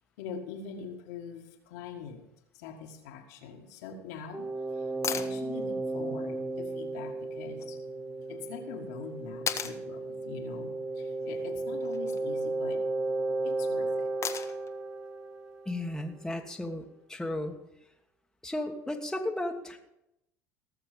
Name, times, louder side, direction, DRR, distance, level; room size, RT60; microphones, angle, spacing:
voice 1, 0.2-2.2 2.5-7.8 8.3-12.8 13.4-14.1, left 6 dB, 75° left, 2.0 m, -43 dB
sound 1, 4.3-15.9, right 2 dB, 25° right, 1.4 m, -34 dB
sound 2, 5.0-5.3 7.6-7.7 9.5-9.8 11.8-12.2 14.2-14.7 16.8-16.9, left 7 dB, 35° left, 1.2 m, -34 dB
voice 2, 15.6-17.5 18.4-19.8, left 1 dB, 5° left, 1.6 m, -34 dB
18.5 x 6.9 x 5.2 m
hypercardioid pair, 80°, 8 cm